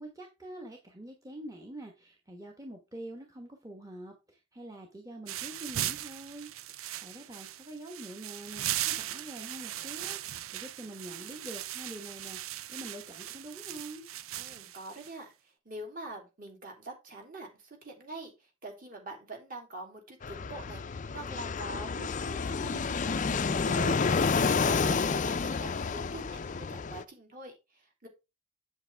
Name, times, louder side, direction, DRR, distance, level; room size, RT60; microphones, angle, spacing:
voice 1, 0.0-14.1, right 1 dB, 15° right, 2 dB, 1.2 m, -45 dB
sound 1, 5.3-15.1, right 13 dB, 75° right, 0.5 m, -38 dB
voice 2, 14.3-28.1, right 2 dB, 40° right, 2 dB, 3.0 m, -45 dB
Fixed-wing aircraft airplane, 20.2-27.0, left 5 dB, 35° left, 0.4 m, -30 dB
7.9 x 7.8 x 3.4 m, 0.25 s
head